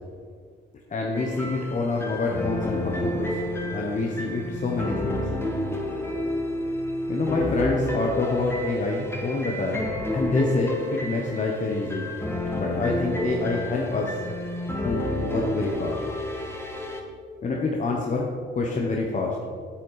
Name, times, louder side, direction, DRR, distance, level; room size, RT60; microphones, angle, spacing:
voice 1, 0.9-3.4 3.7-5.2 7.1-9.9 10.1-12.1 12.6-14.2 14.8-16.0 17.4-19.4, left 3 dB, 40° left, -1 dB, 1.2 m, -27 dB
sound 1, 1.1-17.0, left 1 dB, 10° left, 1.5 m, -30 dB
8.7 x 7.6 x 5.0 m, 2.1 s
cardioid pair, 90°, 20 cm